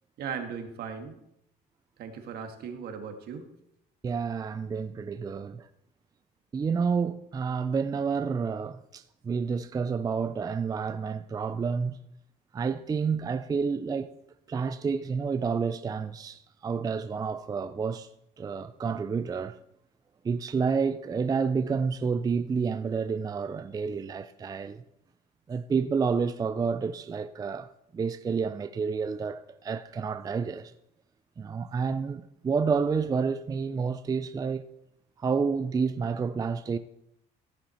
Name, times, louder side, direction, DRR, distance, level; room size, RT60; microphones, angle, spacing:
voice 1, 0.2-1.1 2.0-3.4, right 6 dB, 70° right, 1.5 m, -37 dB
voice 2, 4.0-5.7 6.5-12.0 12.5-14.1 14.5-18.1 18.4-19.5 20.2-24.8 25.5-27.7 27.9-30.7 31.4-34.6 35.2-36.8, right 5 dB, 20° right, 0.4 m, -29 dB
14.5 x 5.9 x 4.3 m
cardioid pair, 110°, 17 cm